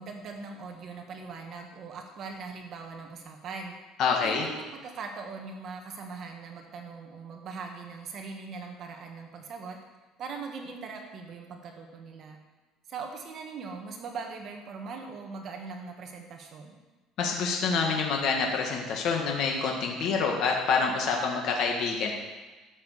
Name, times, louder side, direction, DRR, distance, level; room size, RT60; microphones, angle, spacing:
voice 1, 0.0-3.7 4.1-9.8 10.2-12.4 12.9-16.8, right 4 dB, 40° right, 3 dB, 1.5 m, -40 dB
voice 2, 4.0-4.4 17.2-22.1, left 5 dB, 50° left, 1 dB, 1.7 m, -27 dB
11.5 x 7.3 x 6.9 m, 1.2 s
cardioid pair, 170°, 0 cm